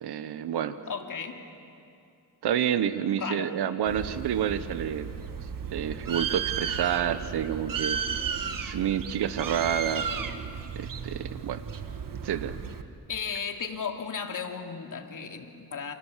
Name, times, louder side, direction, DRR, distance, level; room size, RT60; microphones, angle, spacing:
voice 1, 0.0-0.8 2.4-5.1 5.7-8.0 8.6-10.1 10.7-11.6 12.2-12.6, right 9 dB, 75° right, 12 dB, 1.2 m, -29 dB
voice 2, 0.9-1.4 3.2-3.5 9.1-9.2 13.1-15.9, left 6 dB, 50° left, 3 dB, 2.8 m, -35 dB
Bird, 3.9-12.8, right 6 dB, 55° right, 1.7 m, -34 dB
28.5 x 28.0 x 7.4 m, 2.5 s
cardioid pair, 95°, 40 cm